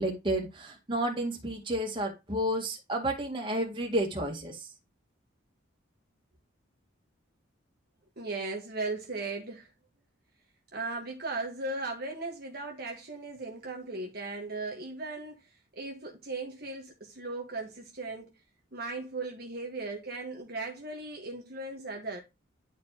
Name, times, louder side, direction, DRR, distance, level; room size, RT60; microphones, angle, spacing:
voice 1, 0.0-4.7, right 1 dB, 25° right, 2.2 m, -31 dB
voice 2, 8.2-9.7 10.7-18.3 18.7-22.2, right 3 dB, 50° right, 1.4 m, -37 dB
11.0 x 4.5 x 2.9 m
head